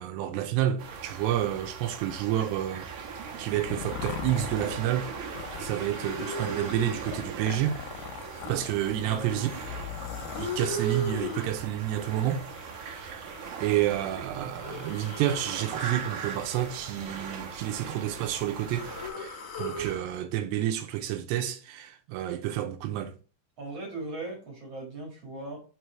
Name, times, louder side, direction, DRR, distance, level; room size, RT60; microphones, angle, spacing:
voice 1, 0.0-2.9 3.4-7.8 8.5-9.5 10.4-12.4 12.7-13.3 13.6-18.9 19.2-23.1, right 12 dB, 90° right, 2.9 m, -30 dB
sound 1, 0.8-19.1, right 6 dB, 65° right, 1.9 m, -40 dB
sound 2, 3.2-10.4, left 10 dB, 85° left, 2.0 m, -40 dB
sound 3, 5.1-5.2 5.5-7.1 7.5-9.5 9.9-11.5 11.9-13.8 14.5-15.9 16.2-18.0 18.3-20.0, equal, 55° left, 1.9 m, -39 dB
voice 2, 9.0-9.5 23.6-25.6, right 2 dB, 45° right, 2.5 m, -39 dB
5.8 x 4.7 x 4.5 m
omnidirectional pair, 4.8 m